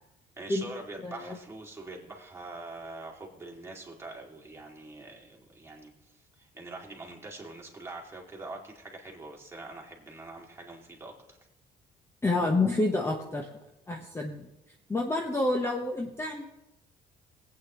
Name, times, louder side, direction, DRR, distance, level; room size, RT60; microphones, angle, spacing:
voice 1, 0.4-11.4 14.0-14.1, right 2 dB, 15° right, -1 dB, 2.6 m, -44 dB
voice 2, 1.0-1.4 12.2-13.5 13.9-14.5 14.9-16.5, left 2 dB, 15° left, 1 dB, 1.1 m, -28 dB
19.0 x 8.8 x 3.1 m, 0.92 s
cardioid pair, 110°, 17 cm